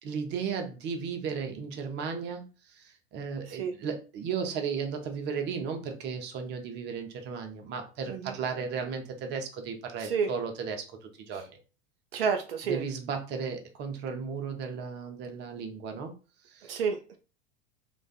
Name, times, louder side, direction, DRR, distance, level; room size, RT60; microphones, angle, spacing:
voice 1, 0.0-11.4 12.6-16.1 16.4-16.7, right 6 dB, 40° right, 0.7 m, -35 dB
voice 2, 10.0-10.3 12.1-12.8 16.7-17.2, right 6 dB, 75° right, 0.5 m, -30 dB
2.4 x 2.2 x 2.3 m
figure-of-eight pair, 85°, 29 cm